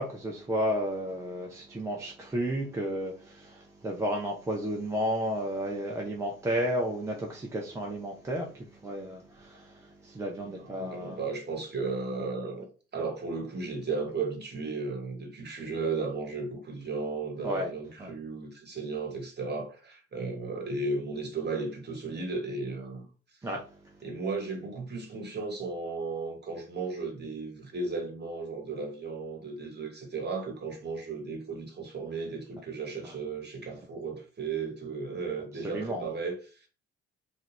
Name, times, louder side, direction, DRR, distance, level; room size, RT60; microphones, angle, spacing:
voice 1, 0.0-8.5 8.8-9.7 10.0-11.2 17.4-17.7 18.0-18.1 23.4-23.6 35.7-36.0, equal, 10° right, 0.3 m, -32 dB
voice 2, 10.4-12.7 12.9-23.1 24.0-36.7, right 4 dB, 25° right, 1.0 m, -35 dB
2.3 x 2.2 x 3.2 m
figure-of-eight pair, 45°, 39 cm